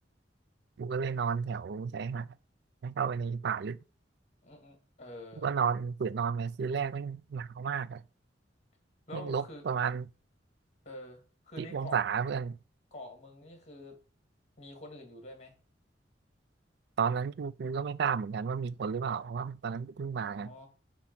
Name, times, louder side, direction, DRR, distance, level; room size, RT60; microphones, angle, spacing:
voice 1, 0.8-2.4 2.8-3.8 5.4-8.0 9.1-10.1 11.6-12.6 17.0-20.5, right 6 dB, 60° right, 0.4 m, -32 dB
voice 2, 4.4-5.5 9.1-9.6 10.9-12.0 12.9-14.0 14.6-15.5 20.3-20.7, left 1 dB, 40° left, 2.0 m, -47 dB
8.2 x 3.0 x 5.9 m
head